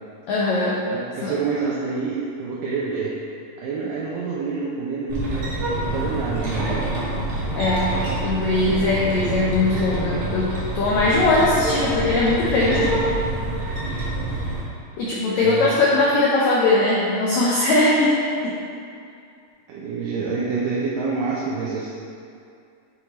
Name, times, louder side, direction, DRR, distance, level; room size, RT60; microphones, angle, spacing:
voice 1, 0.3-0.8 1.2-1.3 7.5-8.0 8.2-12.9 15.0-18.1 18.4-18.5, left 2 dB, 80° left, -6 dB, 1.6 m, -20 dB
voice 2, 0.9-3.1 3.6-5.5 5.8-6.9 15.4-15.8 19.7-21.9, right 4 dB, 80° right, -6 dB, 2.3 m, -27 dB
sound 1, 5.1-14.6, right 1 dB, 60° right, 1.4 m, -26 dB
8.0 x 4.8 x 3.0 m, 2.5 s
omnidirectional pair, 4.0 m